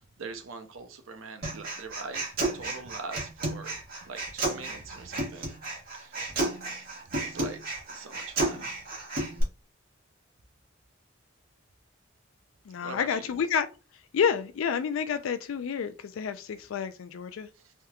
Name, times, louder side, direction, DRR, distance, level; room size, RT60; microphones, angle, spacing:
voice 1, 0.2-5.5 5.9-6.2 7.1-8.8 12.8-13.4 17.6-17.7, right 4 dB, 90° right, 0.6 m, -43 dB
Human voice, 1.4-9.4, right 2 dB, 50° right, 1.5 m, -32 dB
voice 2, 12.7-13.7 14.1-17.5, left 7 dB, 85° left, 0.4 m, -29 dB
3.5 x 2.8 x 2.3 m
head